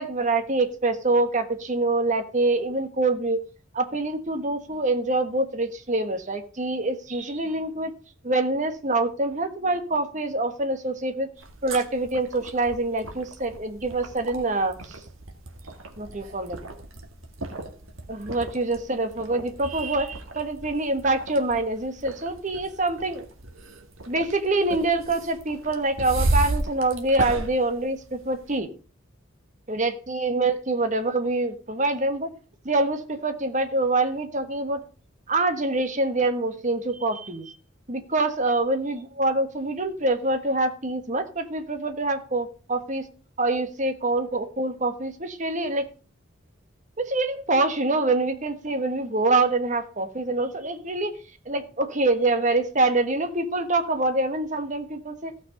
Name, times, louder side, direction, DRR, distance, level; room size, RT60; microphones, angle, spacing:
voice 1, 0.0-3.4 3.7-7.9 8.2-11.3 11.6-15.0 16.0-16.6 18.1-23.3 24.1-28.7 29.7-32.3 32.6-34.8 35.3-37.5 37.9-43.1 43.4-45.9 47.0-51.1 51.4-55.3, right 2 dB, 35° right, 8 dB, 1.4 m, -25 dB
sound 1, 11.4-28.6, right 2 dB, 85° right, 2.0 m, -34 dB
15.0 x 6.2 x 5.2 m, 0.37 s
head